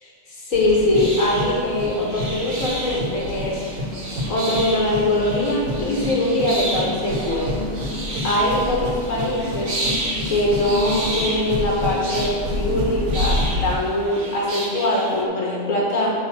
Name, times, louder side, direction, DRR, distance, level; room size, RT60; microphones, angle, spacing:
voice 1, 0.0-3.6 4.3-7.7 8.2-9.7 10.3-13.4 13.6-16.1, left 1 dB, 80° left, -4 dB, 1.8 m, -22 dB
sound 1, 0.5-13.7, left 1 dB, 80° right, 2.3 m, -28 dB
sound 2, 0.6-15.2, right 1 dB, 60° right, 1.5 m, -32 dB
10.0 x 3.7 x 7.0 m, 2.1 s
omnidirectional pair, 1.4 m